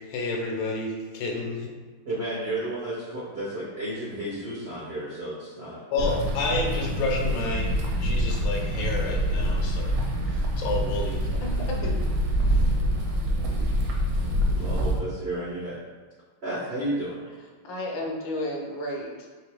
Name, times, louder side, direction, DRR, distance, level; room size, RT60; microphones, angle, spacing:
voice 1, 0.0-1.7 5.9-10.0 10.3-11.3 11.8-11.9 14.6-14.7, left 2 dB, 85° left, 0 dB, 1.6 m, -30 dB
voice 2, 2.1-6.1 14.5-15.8 16.4-17.2, right 1 dB, 85° right, -7 dB, 0.5 m, -32 dB
sound 1, 6.0-15.0, equal, 70° right, 1.0 m, -26 dB
voice 3, 11.4-11.8 12.5-13.0 17.6-19.3, left 1 dB, 70° left, -1 dB, 1.2 m, -33 dB
3.8 x 2.9 x 3.4 m, 1.4 s
omnidirectional pair, 2.3 m